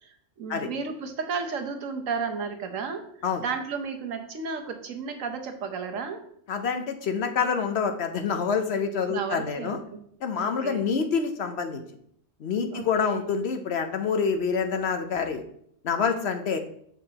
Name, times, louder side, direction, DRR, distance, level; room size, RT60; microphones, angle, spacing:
voice 1, 0.0-3.0 3.4-6.2 9.1-10.0 10.4-10.9 12.7-13.3, right 5 dB, 90° right, 6 dB, 1.3 m, -33 dB
voice 2, 6.5-9.8 10.2-11.8 12.4-15.4 15.8-16.6, left 6 dB, 60° left, 6 dB, 0.9 m, -27 dB
6.5 x 6.4 x 2.9 m, 0.67 s
omnidirectional pair, 1.3 m